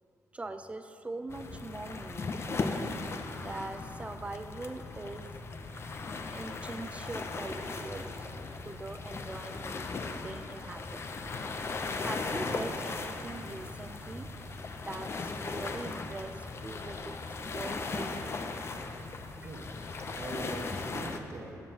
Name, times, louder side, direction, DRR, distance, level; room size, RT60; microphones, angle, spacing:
voice 1, 0.3-2.7 3.4-5.3 6.3-11.0 12.0-18.4 19.4-19.5, right 2 dB, 20° right, 9 dB, 0.5 m, -42 dB
sound 1, 1.3-21.2, left 3 dB, 40° left, 0.6 m, -38 dB
voice 2, 19.4-21.6, right 3 dB, 50° right, 2 dB, 1.0 m, -43 dB
14.0 x 7.4 x 2.9 m, 2.7 s
cardioid pair, 85°, 6 cm